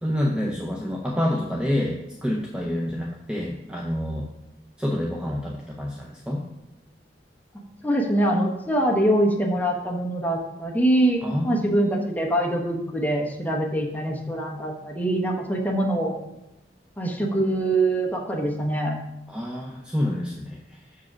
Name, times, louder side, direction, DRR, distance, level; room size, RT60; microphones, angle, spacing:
voice 1, 0.0-4.3 4.8-6.4 11.2-11.7 19.3-20.8, left 1 dB, 5° right, -1 dB, 0.6 m, -28 dB
voice 2, 7.8-16.2 17.0-19.0, right 1 dB, 10° left, -1 dB, 1.0 m, -24 dB
6.4 x 4.8 x 6.0 m, 0.93 s
head